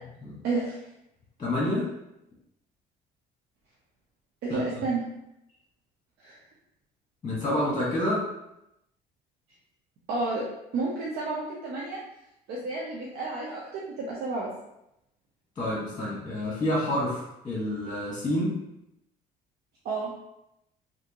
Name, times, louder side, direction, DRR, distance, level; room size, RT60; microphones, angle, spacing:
voice 1, 0.4-0.8 4.4-5.0 6.2-6.4 10.1-10.4 10.7-12.0 12.5-14.5 19.8-20.1, right 3 dB, 75° right, -4 dB, 0.7 m, -31 dB
voice 2, 1.4-1.9 4.5-4.6 7.2-8.3 15.6-18.6, left 1 dB, 25° left, -5 dB, 1.2 m, -28 dB
3.4 x 2.8 x 2.8 m, 0.85 s
cardioid pair, 110°, 17 cm